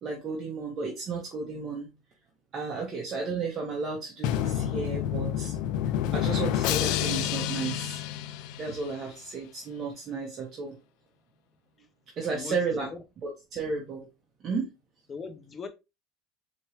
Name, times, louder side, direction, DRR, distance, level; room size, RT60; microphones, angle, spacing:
voice 1, 0.0-1.9 2.5-5.6 6.1-8.0 8.6-10.8 12.2-12.9 13.2-14.1 14.4-14.7, right 4 dB, 35° right, 1.0 m, -33 dB
Drum, 4.2-9.1, left 11 dB, 65° left, 0.4 m, -29 dB
voice 2, 12.3-13.0 15.1-15.7, left 5 dB, 25° left, 0.7 m, -40 dB
4.3 x 3.0 x 3.1 m
cardioid pair, 140°, 0 cm